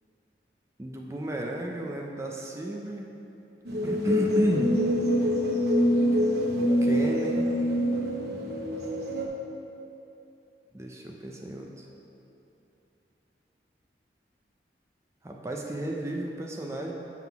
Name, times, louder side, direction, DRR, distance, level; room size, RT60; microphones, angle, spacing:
voice 1, 0.8-3.1 3.8-4.7 6.5-7.5 10.7-11.9 15.2-16.9, right 1 dB, 15° right, 0 dB, 0.5 m, -32 dB
sound 1, 3.6-9.2, equal, 65° right, 0.9 m, -25 dB
7.9 x 3.7 x 5.8 m, 2.9 s
head